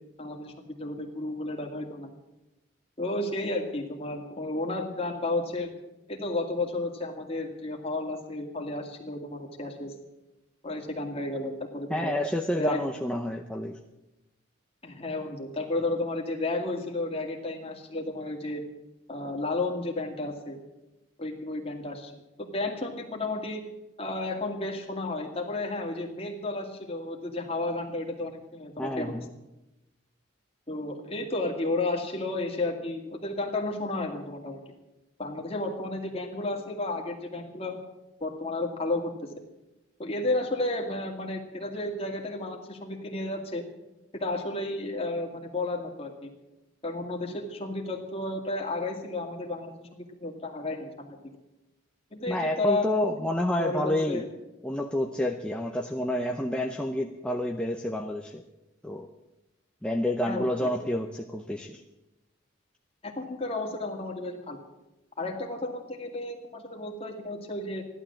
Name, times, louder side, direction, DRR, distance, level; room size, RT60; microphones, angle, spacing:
voice 1, 0.2-2.1 3.0-5.7 6.1-10.0 10.6-12.1 12.5-12.8 14.8-18.6 19.1-20.6 21.2-22.2 22.5-23.6 24.0-29.2 30.7-34.6 35.2-37.8 38.2-39.1 40.0-43.6 44.2-46.3 46.8-51.2 52.1-52.9 53.6-54.3 60.3-60.7 63.0-64.6 65.2-67.9, left 2 dB, 30° left, 1 dB, 2.2 m, -32 dB
voice 2, 11.9-13.8 28.8-29.3 52.3-54.2 54.6-58.4 58.8-59.1 59.8-61.8, left 1 dB, 5° left, 2 dB, 0.7 m, -29 dB
15.0 x 11.5 x 7.4 m, 0.98 s
head